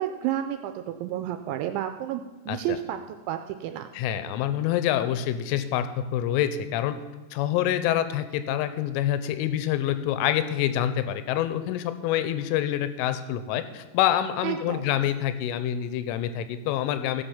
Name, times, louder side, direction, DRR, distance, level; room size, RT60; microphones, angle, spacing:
voice 1, 0.0-3.9 14.4-14.8, right 11 dB, 85° right, 8 dB, 2.7 m, -31 dB
voice 2, 3.9-5.9 6.1-7.0 7.3-17.2, left 11 dB, 90° left, 11 dB, 3.2 m, -26 dB
17.0 x 5.7 x 7.1 m, 1.2 s
omnidirectional pair, 5.6 m